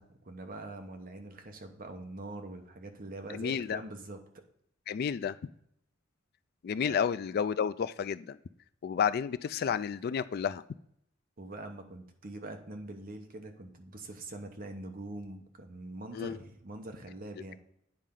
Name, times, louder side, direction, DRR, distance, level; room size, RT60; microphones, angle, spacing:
voice 1, 0.0-4.2 6.8-7.0 11.4-17.6, right 2 dB, 45° right, 5 dB, 0.9 m, -43 dB
voice 2, 3.3-3.8 4.9-5.4 6.6-8.4 8.8-10.6 16.1-16.4, left 7 dB, 50° left, 14 dB, 0.3 m, -31 dB
9.1 x 4.3 x 3.7 m, 0.71 s
head